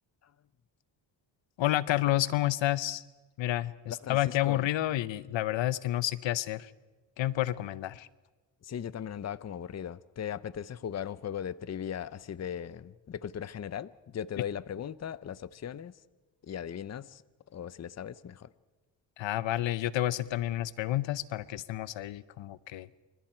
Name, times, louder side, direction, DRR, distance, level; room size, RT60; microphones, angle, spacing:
voice 1, 1.6-3.0 3.4-6.7 7.2-8.1 19.2-22.9, left 14 dB, 80° left, 17 dB, 0.9 m, -30 dB
voice 2, 4.0-4.6 8.6-15.9 16.4-17.2 17.5-18.5, left 9 dB, 35° left, 17 dB, 0.7 m, -38 dB
29.0 x 26.5 x 4.5 m, 1.2 s
cardioid pair, 105°, 45 cm